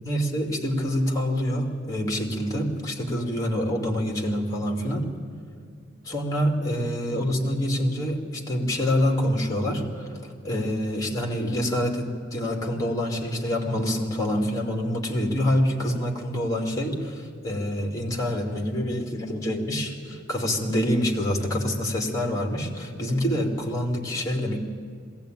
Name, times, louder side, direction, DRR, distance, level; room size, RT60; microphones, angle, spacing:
voice 1, 0.0-5.1 6.0-24.6, equal, 20° left, 2 dB, 2.5 m, -26 dB
21.0 x 16.5 x 9.2 m, 2.2 s
head